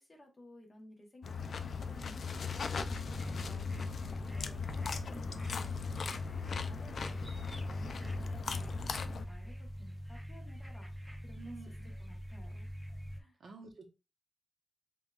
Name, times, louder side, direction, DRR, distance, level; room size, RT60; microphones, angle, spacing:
voice 1, 0.0-12.7 13.2-13.4, left 1 dB, 25° left, 2 dB, 0.9 m, -56 dB
sound 1, 1.2-9.3, left 5 dB, 60° left, 0.3 m, -39 dB
sound 2, 2.7-13.2, equal, 5° right, 0.5 m, -43 dB
voice 2, 11.4-11.9 13.4-13.9, right 4 dB, 65° right, 4 dB, 0.8 m, -50 dB
5.3 x 2.4 x 2.3 m, 0.28 s
wide cardioid pair, 180°, 0 cm